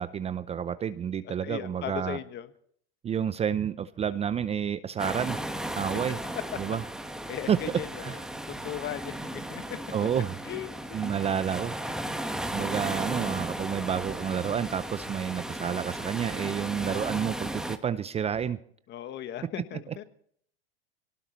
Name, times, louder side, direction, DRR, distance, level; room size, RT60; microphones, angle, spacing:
voice 1, 0.0-2.2 3.0-5.4 5.8-6.2 6.6-6.8 7.5-7.6 8.0-8.1 9.9-10.4 10.9-11.7 12.5-18.6, right 8 dB, 20° right, 14 dB, 0.6 m, -30 dB
voice 2, 1.2-2.5 6.7-6.8 7.3-8.2 8.5-9.6 10.4-11.0 18.9-20.0, left 11 dB, 35° left, 11 dB, 1.5 m, -38 dB
sound 1, 5.0-17.8, right 1 dB, ahead, 1.3 m, -35 dB
24.0 x 18.5 x 3.1 m, 0.64 s
hypercardioid pair, 105°, 30 cm